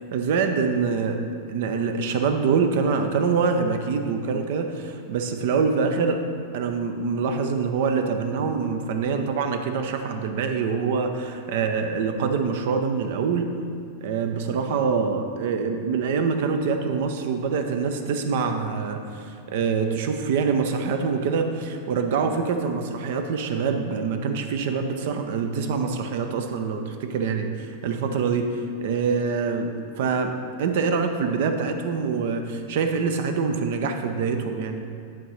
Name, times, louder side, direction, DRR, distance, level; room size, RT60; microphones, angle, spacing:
voice 1, 0.1-1.2 1.5-6.2 6.5-13.6 14.0-34.8, right 5 dB, 55° right, 6 dB, 0.7 m, -25 dB
10.0 x 3.7 x 5.7 m, 2.3 s
figure-of-eight pair, 90°, 0 cm